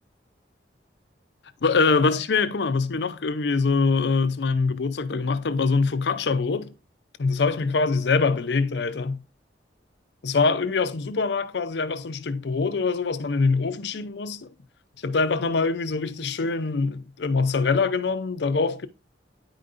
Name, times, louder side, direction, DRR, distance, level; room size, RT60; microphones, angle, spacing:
voice 1, 1.6-6.7 7.2-9.2 10.2-14.5 15.0-18.9, left 4 dB, 70° left, 0.5 m, -24 dB
9.5 x 5.1 x 2.5 m
head